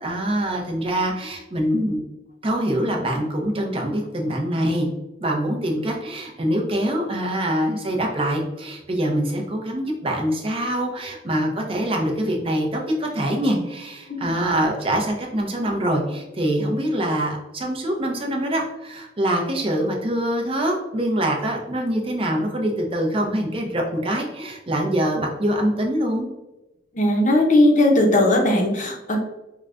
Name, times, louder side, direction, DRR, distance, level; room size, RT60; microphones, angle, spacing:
voice 1, 0.0-2.0 2.4-4.9 5.2-26.3, right 1 dB, 30° right, 1 dB, 0.6 m, -24 dB
voice 2, 26.9-29.2, left 1 dB, 45° left, 1 dB, 0.6 m, -18 dB
4.7 x 2.1 x 2.4 m, 1.0 s
head